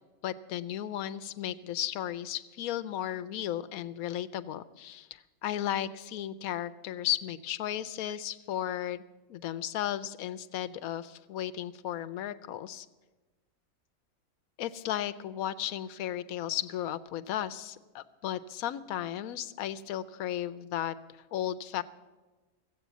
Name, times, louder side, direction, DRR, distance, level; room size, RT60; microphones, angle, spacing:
voice 1, 0.2-9.0 9.3-12.9 14.6-20.9 21.3-21.8, left 11 dB, 90° left, 13 dB, 1.1 m, -35 dB
15.0 x 8.2 x 8.2 m, 1.2 s
omnidirectional pair, 1.4 m